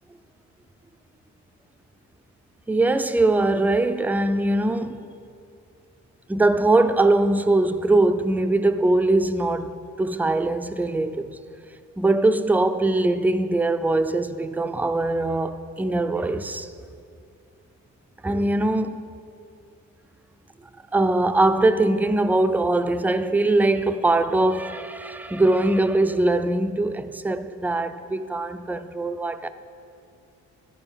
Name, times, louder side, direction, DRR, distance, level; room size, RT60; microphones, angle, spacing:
voice 1, 2.7-5.1 6.3-11.4 12.0-16.7 18.2-19.0 20.9-29.5, right 2 dB, 5° right, 0.3 m, -22 dB
14.0 x 4.7 x 5.7 m
cardioid pair, 90°, 30 cm